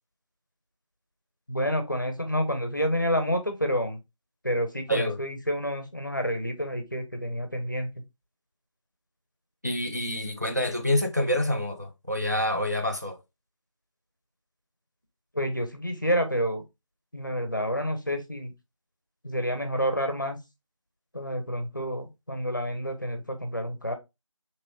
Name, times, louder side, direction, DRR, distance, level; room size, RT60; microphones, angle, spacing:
voice 1, 1.5-4.0 4.4-7.9 15.3-16.6 17.1-18.5 19.2-20.4 21.1-23.9, equal, 35° left, 0.6 m, -29 dB
voice 2, 9.6-13.2, left 1 dB, 35° right, 0.4 m, -27 dB
3.5 x 3.0 x 2.9 m
figure-of-eight pair, 175°, 17 cm